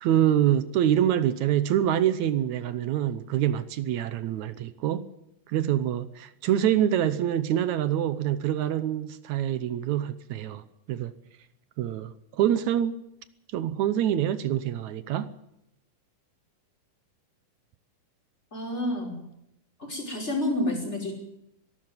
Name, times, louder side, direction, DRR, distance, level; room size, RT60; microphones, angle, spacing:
voice 1, 0.0-5.1 5.5-11.1 11.8-13.0 13.5-15.3, right 11 dB, 70° right, 2.0 m, -25 dB
voice 2, 18.5-19.2 19.8-21.1, left 1 dB, 20° left, 5.7 m, -29 dB
23.0 x 12.5 x 9.5 m
omnidirectional pair, 3.8 m